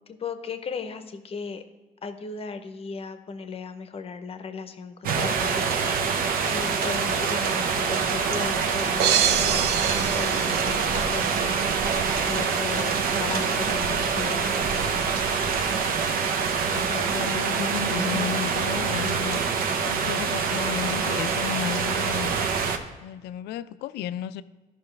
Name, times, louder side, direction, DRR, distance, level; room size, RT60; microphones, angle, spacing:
voice 1, 0.1-1.6 2.0-6.2 6.5-11.6 12.2-12.9 13.2-14.7, left 5 dB, 35° left, 0.7 m, -36 dB
sound 1, 5.0-22.8, right 5 dB, 60° right, 0.8 m, -25 dB
sound 2, 9.0-11.3, right 9 dB, 85° right, 0.5 m, -26 dB
sound 3, 9.8-19.1, right 6 dB, 35° right, 0.6 m, -39 dB
voice 2, 16.6-19.5 19.9-22.4 23.0-24.4, left 10 dB, 75° left, 0.4 m, -33 dB
13.0 x 5.5 x 3.3 m
cardioid pair, 110°, 17 cm